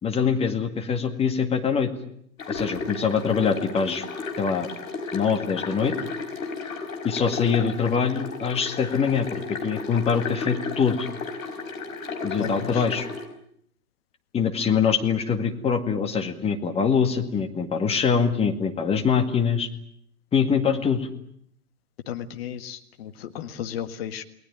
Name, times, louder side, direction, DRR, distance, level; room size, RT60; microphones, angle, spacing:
voice 1, 0.0-1.9 2.5-4.0 4.4-4.7 5.1-6.0 7.0-11.1 12.2-13.1 14.3-19.7 20.3-21.1, left 6 dB, 15° left, 6 dB, 2.1 m, -24 dB
sound 1, 2.4-13.2, left 4 dB, 60° left, 5.5 m, -33 dB
voice 2, 12.4-12.8 22.1-24.2, left 10 dB, 40° left, 9 dB, 1.8 m, -34 dB
29.0 x 20.0 x 9.0 m, 0.68 s
figure-of-eight pair, 115°, 46 cm